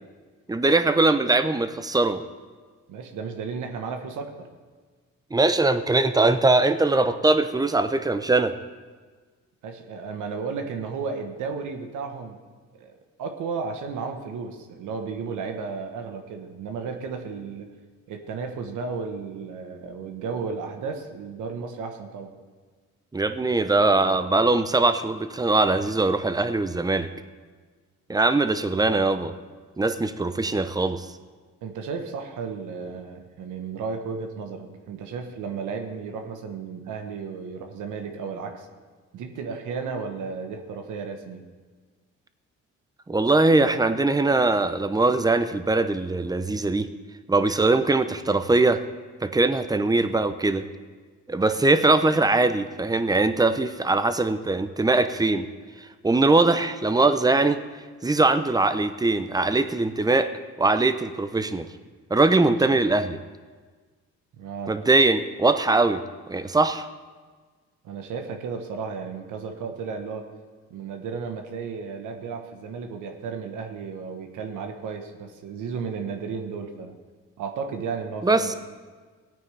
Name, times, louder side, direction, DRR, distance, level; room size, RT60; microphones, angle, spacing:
voice 1, 0.5-2.2 5.3-8.6 23.1-27.1 28.1-29.3 29.8-31.1 43.1-46.9 47.3-48.8 49.2-50.6 51.3-55.5 55.8-57.6 58.0-60.3 60.6-61.7 62.1-63.2 64.7-66.0 66.3-66.9 78.2-78.5, right 2 dB, 15° right, 11 dB, 0.6 m, -21 dB
voice 2, 2.9-4.5 9.6-12.4 12.7-17.7 18.1-22.3 31.6-38.7 39.1-41.5 62.7-62.8 64.3-64.8 67.8-70.3 70.7-76.9 77.4-78.6, right 5 dB, 80° right, 5 dB, 1.2 m, -34 dB
17.0 x 9.1 x 3.4 m, 1.4 s
cardioid pair, 90°, 30 cm